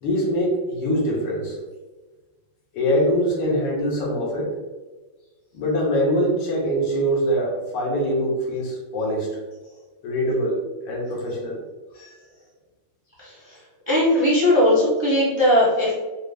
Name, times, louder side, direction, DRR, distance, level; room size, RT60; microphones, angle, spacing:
voice 1, 0.0-1.6 2.7-4.5 5.5-9.3 10.0-10.6 10.9-11.6, equal, 90° left, -3 dB, 2.0 m, -23 dB
voice 2, 13.2-13.6 13.9-15.9, left 1 dB, 20° right, -8 dB, 0.7 m, -19 dB
5.0 x 2.0 x 3.3 m, 1.2 s
omnidirectional pair, 2.4 m